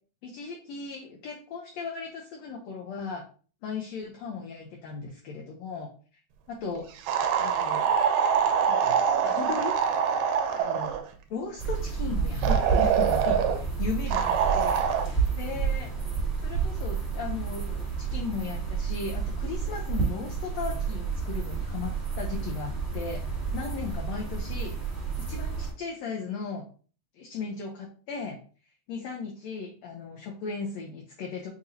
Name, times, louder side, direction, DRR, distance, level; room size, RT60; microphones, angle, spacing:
voice 1, 0.2-3.2 3.6-5.9 6.5-6.8 7.4-7.9 8.7-9.7 10.5-10.9 11.3-15.9 16.4-23.2 23.5-24.7 25.3-26.6 27.2-28.4 28.9-31.5, left 5 dB, 75° left, 0 dB, 1.6 m, -36 dB
sound 1, 7.1-11.0 12.4-13.6 14.1-15.1, right 7 dB, 80° right, 1.9 m, -24 dB
sound 2, 11.6-25.7, right 5 dB, ahead, 1.1 m, -30 dB
6.5 x 3.0 x 2.6 m, 0.40 s
omnidirectional pair, 3.8 m